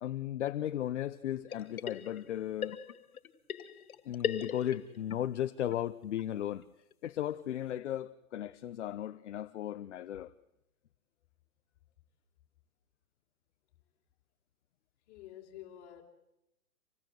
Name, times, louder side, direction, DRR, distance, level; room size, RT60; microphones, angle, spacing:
voice 1, 0.0-2.8 4.0-6.6 7.0-10.3, left 11 dB, 55° left, 1.0 m, -36 dB
sound 1, 1.5-2.3 2.6-5.2 5.4-5.5 5.7-5.8 6.2-6.3 6.6-6.7 6.9-7.0 7.4-7.5, left 8 dB, 75° left, 2.4 m, -38 dB
voice 2, 15.1-16.0, left 12 dB, 30° left, 4.4 m, -49 dB
26.5 x 18.5 x 7.8 m
hypercardioid pair, 160°, 43 cm